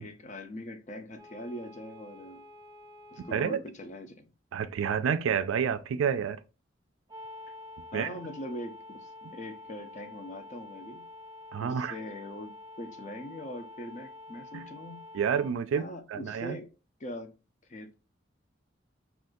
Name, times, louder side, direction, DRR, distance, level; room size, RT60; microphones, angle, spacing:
voice 1, 0.0-2.4 3.1-4.3 7.9-11.1 11.6-12.5 12.8-15.0 15.7-16.7 17.0-17.3 17.7-17.9, left 1 dB, 35° left, 0.5 m, -41 dB
sound 1, 1.2-3.5 7.1-15.5, left 2 dB, 20° right, 0.4 m, -48 dB
voice 2, 3.2-3.6 4.5-6.4 7.9-8.1 11.5-11.9 14.5-14.7 15.1-15.8 16.1-16.6, right 7 dB, 85° right, 0.3 m, -29 dB
2.6 x 2.4 x 3.6 m
head